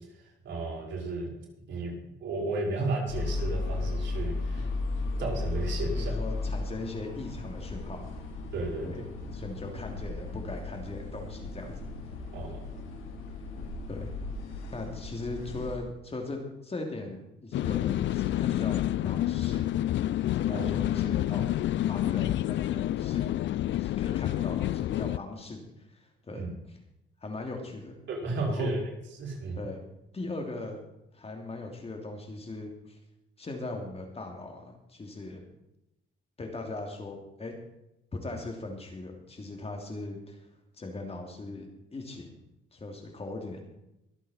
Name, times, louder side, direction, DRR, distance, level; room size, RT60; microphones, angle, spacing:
voice 1, 0.4-1.3 1.7-1.9 2.2-4.7 5.2-6.2 8.5-9.3 12.3-12.6 20.5-20.7 26.3-26.5 28.1-28.8 29.2-29.6, right 3 dB, 65° right, -3 dB, 6.0 m, -33 dB
sound 1, 3.1-15.8, left 3 dB, 85° left, 3.2 m, -35 dB
voice 2, 6.0-8.1 8.8-9.0 9.3-11.8 13.9-14.2 14.7-19.6 20.3-21.4 21.8-23.3 23.7-26.8 27.2-28.0 28.5-28.7 29.6-29.8 30.1-30.9 31.1-33.0 33.4-35.4 36.4-37.6 38.1-40.4 40.8-41.7 41.9-42.3 42.7-43.6, left 2 dB, 30° left, 3 dB, 2.9 m, -39 dB
sound 2, 17.5-25.2, left 13 dB, 70° left, 0.5 m, -28 dB
23.0 x 8.3 x 4.4 m, 0.88 s
cardioid pair, 90°, 20 cm